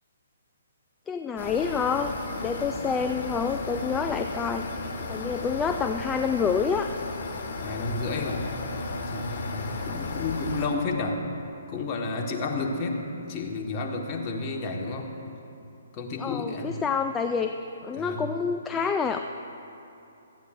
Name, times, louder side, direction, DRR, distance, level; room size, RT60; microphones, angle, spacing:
voice 1, 1.1-2.1 2.4-6.9 16.2-17.5 17.8-19.2, left 6 dB, 15° left, 6 dB, 0.4 m, -28 dB
sound 1, 1.4-10.7, left 3 dB, 50° left, 1.7 m, -34 dB
voice 2, 7.6-11.2 11.7-15.1 15.9-16.7 18.0-18.2, left 3 dB, 30° left, 1 dB, 1.5 m, -31 dB
17.5 x 13.5 x 2.6 m, 2.7 s
hypercardioid pair, 135°, 0 cm